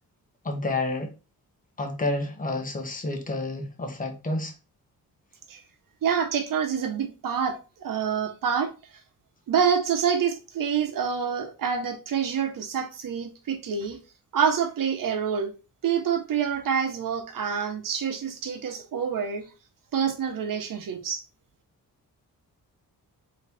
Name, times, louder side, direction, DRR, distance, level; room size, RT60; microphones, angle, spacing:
voice 1, 0.4-1.1 1.8-4.5, left 2 dB, 25° left, 1.2 m, -29 dB
voice 2, 6.0-8.7 9.5-14.0 14.3-15.5 15.8-19.4 19.9-21.2, right 7 dB, 65° right, 1.1 m, -27 dB
4.0 x 3.1 x 3.4 m
cardioid pair, 75°, 36 cm